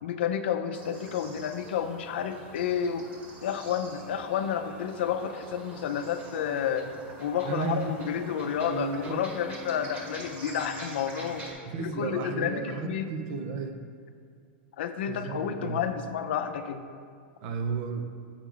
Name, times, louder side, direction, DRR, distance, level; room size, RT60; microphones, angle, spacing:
voice 1, 0.0-3.1 3.4-6.9 7.2-11.5 11.8-13.1 14.8-16.8, left 8 dB, 75° left, 8 dB, 0.6 m, -30 dB
sound 1, 0.7-11.5, right 1 dB, 30° right, 1.7 m, -45 dB
voice 2, 7.4-8.1 8.7-9.2 11.7-13.8 15.1-15.8 17.4-18.0, right 4 dB, 55° right, 5 dB, 0.8 m, -33 dB
7.0 x 6.5 x 3.8 m, 2.2 s
hypercardioid pair, 125°, 6 cm